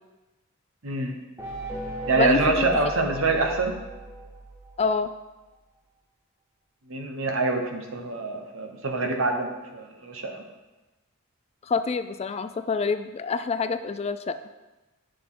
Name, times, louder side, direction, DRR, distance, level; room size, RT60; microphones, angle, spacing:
voice 1, 0.8-1.2 2.1-3.7 6.9-10.4, right 3 dB, 70° right, 3 dB, 1.2 m, -25 dB
sound 1, 1.4-5.1, right 2 dB, 15° right, 1.5 m, -37 dB
voice 2, 2.2-2.7 4.8-5.1 11.6-14.4, left 4 dB, 30° left, 11 dB, 0.3 m, -27 dB
10.0 x 6.8 x 3.8 m, 1.1 s
head